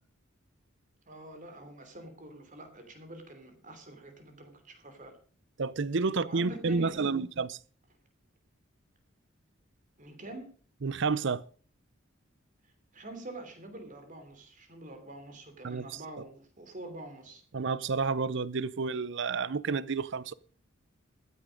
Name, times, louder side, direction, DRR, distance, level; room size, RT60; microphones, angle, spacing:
voice 1, 1.1-5.2 6.3-7.1 10.0-10.5 12.6-17.4, right 2 dB, 40° right, 3.0 m, -46 dB
voice 2, 5.6-7.6 10.8-11.4 15.6-15.9 17.5-20.3, right 4 dB, 60° right, 0.6 m, -30 dB
14.5 x 9.9 x 5.2 m
head